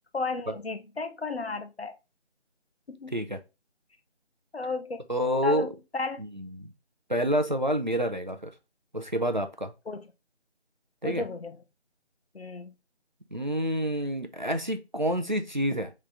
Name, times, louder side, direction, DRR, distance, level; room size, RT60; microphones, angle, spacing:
voice 1, 0.1-1.9 2.9-3.1 4.5-5.0 5.4-6.2 9.9-10.0 11.0-11.5 12.3-12.7, left 3 dB, 65° left, 0.8 m, -33 dB
voice 2, 5.1-5.7 6.3-6.7 7.1-8.5 8.9-9.7 11.0-11.2 13.3-15.9, equal, 45° right, 0.5 m, -28 dB
3.9 x 3.1 x 3.3 m
figure-of-eight pair, 170°, 34 cm